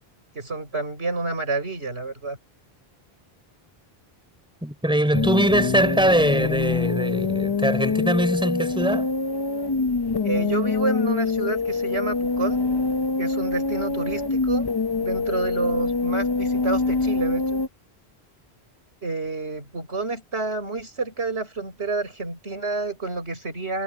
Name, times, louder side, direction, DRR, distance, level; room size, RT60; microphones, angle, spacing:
voice 1, 0.3-2.4 10.2-12.6 13.2-14.7 15.0-17.6 19.0-23.8, right 3 dB, 80° right, 6.0 m, -29 dB
voice 2, 4.6-9.1, right 1 dB, 5° right, 3.6 m, -22 dB
sound 1, 5.1-17.7, left 4 dB, 30° left, 0.6 m, -25 dB
omnidirectional pair, 1.1 m